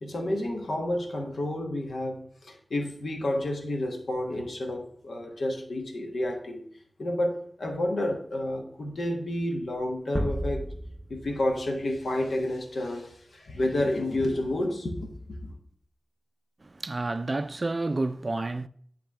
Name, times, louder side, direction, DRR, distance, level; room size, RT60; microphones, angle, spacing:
voice 1, 0.0-6.6 7.0-10.7 11.1-15.5, left 1 dB, 90° left, 1.3 m, -30 dB
sound 1, 10.1-13.1, equal, ahead, 1.0 m, -35 dB
voice 2, 16.6-18.7, right 2 dB, 45° right, 0.3 m, -30 dB
9.8 x 3.5 x 3.5 m
wide cardioid pair, 60°, 0 cm